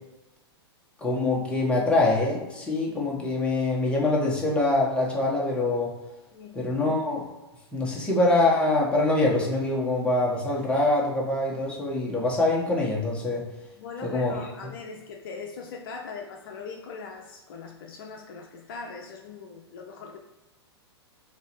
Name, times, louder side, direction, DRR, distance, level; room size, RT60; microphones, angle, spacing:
voice 1, 1.0-5.9 6.5-7.2 7.7-13.4 14.0-14.3 14.6-14.7, left 2 dB, 10° left, -4 dB, 1.2 m, -24 dB
voice 2, 6.3-6.6 13.8-20.2, left 5 dB, 55° left, 1 dB, 0.5 m, -40 dB
3.9 x 2.7 x 4.3 m, 1.0 s
hypercardioid pair, 110°, 14 cm